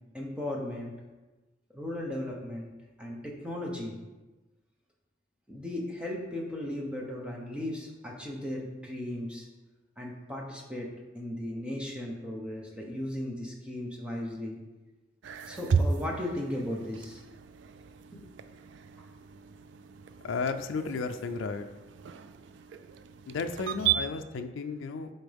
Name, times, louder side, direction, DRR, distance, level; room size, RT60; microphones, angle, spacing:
voice 1, 0.1-0.9 1.7-2.7 3.0-4.0 5.5-9.5 10.0-10.9 11.1-14.6 15.4-17.2 18.1-18.3 19.0-19.1, left 1 dB, 5° right, -2 dB, 0.9 m, -36 dB
sound 1, 15.2-24.0, right 7 dB, 65° right, 0.3 m, -34 dB
voice 2, 20.2-21.7 23.3-25.1, left 4 dB, 75° left, 7 dB, 0.4 m, -33 dB
7.9 x 4.2 x 3.5 m, 1.2 s
head